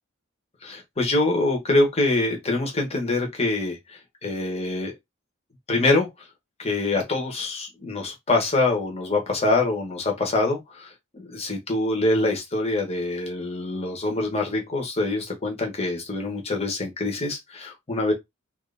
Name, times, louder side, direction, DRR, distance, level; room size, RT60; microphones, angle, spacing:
voice 1, 0.6-4.9 5.7-6.1 6.6-18.1, left 2 dB, 30° left, 1.1 m, -25 dB
3.1 x 2.5 x 3.3 m
head